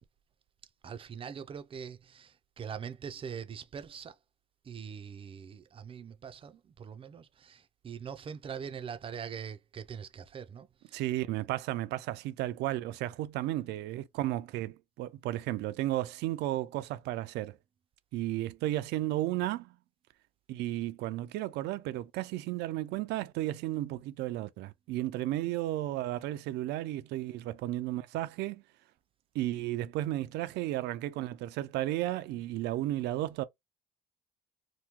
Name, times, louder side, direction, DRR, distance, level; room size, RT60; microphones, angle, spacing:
voice 1, 0.8-4.2 4.6-11.0, right 7 dB, 30° right, 0.5 m, -43 dB
voice 2, 10.9-17.6 18.1-19.8 20.5-28.6 29.3-33.4, right 15 dB, 85° right, 0.5 m, -33 dB
2.9 x 2.2 x 3.5 m
cardioid pair, 110°, 17 cm